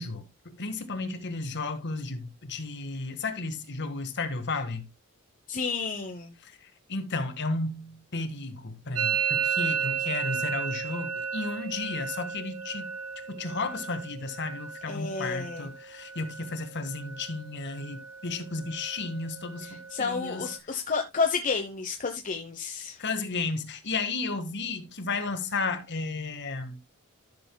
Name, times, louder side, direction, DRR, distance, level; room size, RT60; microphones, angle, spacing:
voice 1, 0.0-4.9 6.4-6.6 6.9-12.9 13.3-20.8 23.0-26.8, left 3 dB, 55° left, 1.6 m, -33 dB
voice 2, 5.5-6.3 14.8-15.7 19.6-23.0, left 5 dB, 35° left, 0.9 m, -31 dB
Musical instrument, 9.0-16.6 16.9-17.4 17.7-18.3 18.6-20.6, right 7 dB, 90° right, 1.0 m, -34 dB
14.0 x 6.9 x 2.2 m
head